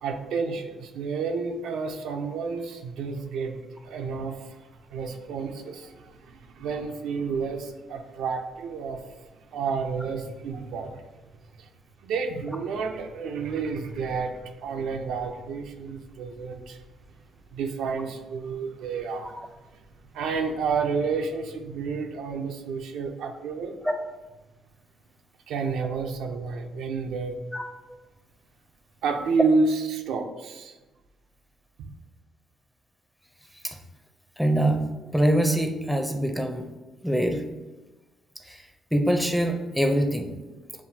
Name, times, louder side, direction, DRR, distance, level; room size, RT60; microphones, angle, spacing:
voice 1, 0.0-4.6 4.9-9.0 9.5-10.9 11.6-11.7 12.0-16.8 17.5-19.3 20.1-23.8 25.5-27.4 29.0-30.8 31.8-31.9, right 4 dB, 85° right, 4 dB, 0.5 m, -30 dB
voice 2, 34.4-34.8 35.1-36.7 37.0-37.4 38.9-40.3, right 1 dB, ahead, 4 dB, 0.5 m, -23 dB
7.0 x 2.4 x 2.7 m, 1.1 s
cardioid pair, 90°, 0 cm